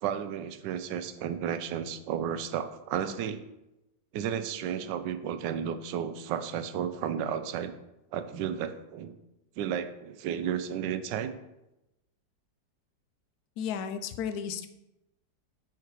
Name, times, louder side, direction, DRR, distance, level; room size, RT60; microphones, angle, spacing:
voice 1, 0.0-3.4 4.1-7.7 8.1-9.1 9.6-11.3, right 8 dB, 75° right, 11 dB, 1.2 m, -33 dB
voice 2, 13.6-14.7, left 7 dB, 70° left, 9 dB, 0.9 m, -33 dB
5.7 x 4.6 x 4.7 m, 0.93 s
omnidirectional pair, 2.0 m